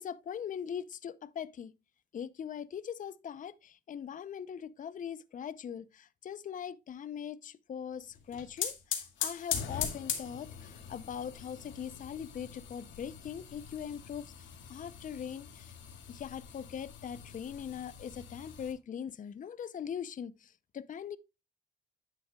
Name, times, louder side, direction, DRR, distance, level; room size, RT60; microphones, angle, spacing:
voice 1, 0.0-1.7 2.1-14.2 14.7-15.7 16.1-21.2, left 8 dB, 40° left, 0.6 m, -41 dB
sound 1, 8.1-18.7, left 8 dB, 75° left, 2.0 m, -41 dB
9.5 x 7.6 x 2.3 m
cardioid pair, 90°, 20 cm